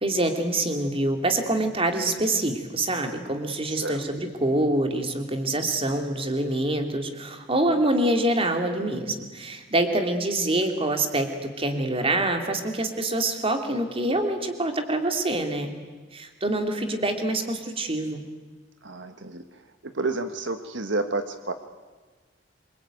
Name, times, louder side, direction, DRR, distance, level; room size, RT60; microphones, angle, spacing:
voice 1, 0.0-15.7 16.1-18.2, right 1 dB, 30° right, 5 dB, 3.0 m, -25 dB
voice 2, 3.7-4.0 18.8-19.4 19.8-21.5, right 3 dB, 70° right, 8 dB, 1.4 m, -30 dB
26.5 x 24.5 x 9.2 m, 1.3 s
head